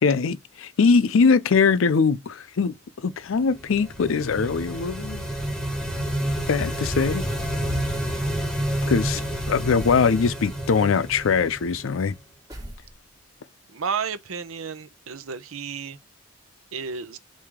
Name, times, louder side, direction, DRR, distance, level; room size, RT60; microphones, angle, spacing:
voice 1, 0.0-2.7 3.0-5.2 6.5-7.3 8.9-9.2 9.5-12.2, left 5 dB, 75° left, 0.5 m, -21 dB
sound 1, 3.4-12.2, equal, 5° left, 0.9 m, -29 dB
sound 2, 9.8-10.1 12.5-13.3, equal, 20° right, 1.3 m, -42 dB
voice 2, 13.7-16.0 16.7-17.2, right 6 dB, 85° right, 0.7 m, -32 dB
4.8 x 2.7 x 3.5 m
head